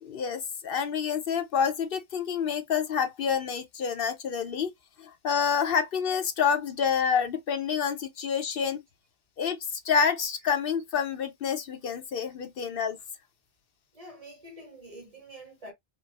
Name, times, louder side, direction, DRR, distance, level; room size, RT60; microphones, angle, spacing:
voice 1, 0.0-4.7 5.0-8.8 9.4-9.6 9.8-13.0, left 7 dB, 65° left, 0.8 m, -28 dB
voice 2, 13.9-15.7, right 1 dB, 35° right, 1.4 m, -46 dB
5.2 x 2.0 x 3.4 m
omnidirectional pair, 1.0 m